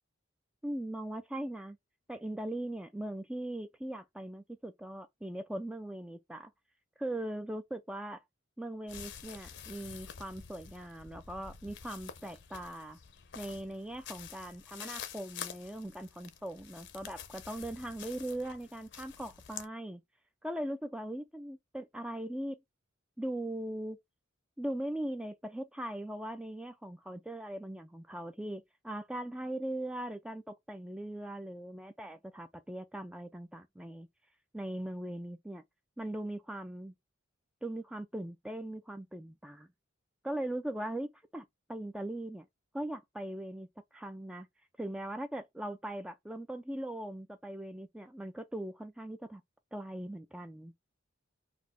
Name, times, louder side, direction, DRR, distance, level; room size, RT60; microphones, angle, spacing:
voice 1, 0.6-1.8 2.1-6.5 7.0-8.2 8.6-13.0 13.4-20.0 20.4-22.6 23.2-24.0 24.6-34.1 34.5-35.6 36.0-36.9 37.6-39.7 40.2-42.5 42.7-44.5 44.8-49.4 49.7-50.7, right 1 dB, 5° right, 0.3 m, -40 dB
sound 1, 8.9-19.7, left 8 dB, 60° left, 0.6 m, -48 dB
4.2 x 2.7 x 4.0 m
head